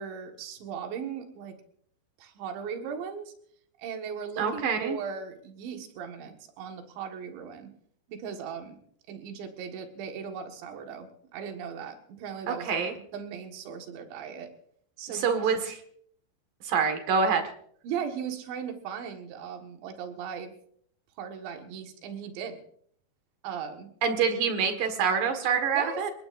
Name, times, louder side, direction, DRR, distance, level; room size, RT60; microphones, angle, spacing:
voice 1, 0.0-1.6 2.2-3.3 3.8-7.7 8.1-8.8 9.1-12.8 13.1-14.5 15.0-15.5 17.8-20.5 21.2-22.6 23.4-23.9 25.8-26.0, right 7 dB, 75° right, 4 dB, 3.9 m, -38 dB
voice 2, 4.4-5.0 12.5-12.9 15.1-15.7 16.6-17.4 24.0-26.1, right 6 dB, 55° right, 6 dB, 2.9 m, -26 dB
29.5 x 19.0 x 2.6 m, 0.65 s
omnidirectional pair, 5.4 m